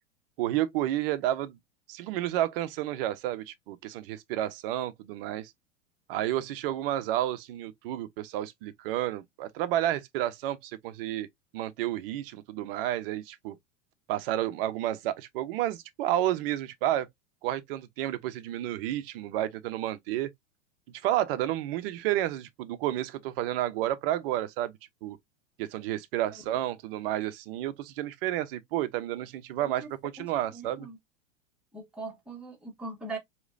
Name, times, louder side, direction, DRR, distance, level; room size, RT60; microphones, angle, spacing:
voice 1, 0.4-1.6 1.9-5.5 6.1-11.3 11.5-13.6 14.1-17.1 17.4-20.3 21.0-24.7 25.0-25.2 25.6-30.9, right 13 dB, 45° right, 0.8 m, -31 dB
voice 2, 30.5-31.0 31.7-33.2, right 3 dB, 5° right, 1.7 m, -40 dB
4.9 x 3.2 x 2.6 m
figure-of-eight pair, 95°, 39 cm